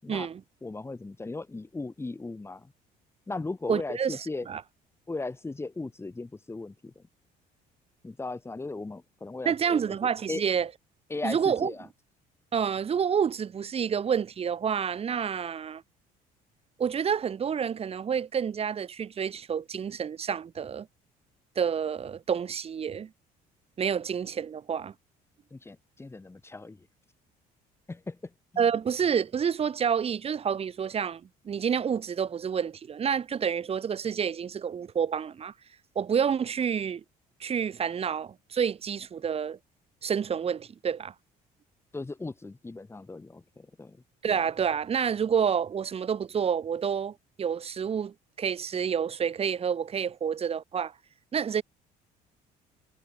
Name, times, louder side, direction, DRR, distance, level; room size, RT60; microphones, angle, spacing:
voice 1, 0.1-0.4 3.7-4.6 9.4-10.7 11.2-11.7 12.5-15.8 16.8-20.9 21.6-23.1 23.8-24.9 28.6-35.5 35.9-37.0 37.4-39.6 40.0-41.1 44.2-50.9 51.3-51.6, right 7 dB, 40° right, 2.8 m, -29 dB
voice 2, 0.6-2.7 3.3-4.5 5.1-7.0 8.0-9.8 10.3-10.5 11.1-11.9 25.5-26.8 27.9-28.2 28.5-28.6 41.9-44.0, left 3 dB, 15° left, 7.6 m, -37 dB
cardioid pair, 115°, 16 cm